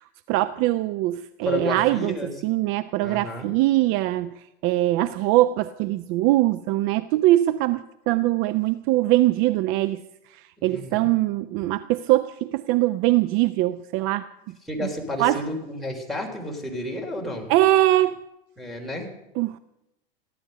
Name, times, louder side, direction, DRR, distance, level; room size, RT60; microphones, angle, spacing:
voice 1, 0.3-2.2 2.4-4.3 4.6-10.0 10.6-14.3 14.8-14.9 15.2-15.4 17.5-18.2 19.4-19.5, right 16 dB, 45° right, 14 dB, 0.5 m, -22 dB
voice 2, 1.4-2.3 3.0-3.5 10.6-11.1 14.7-17.5 18.6-19.1, left 1 dB, ahead, -1 dB, 3.5 m, -31 dB
16.0 x 10.5 x 6.6 m, 0.89 s
hypercardioid pair, 100°, 30 cm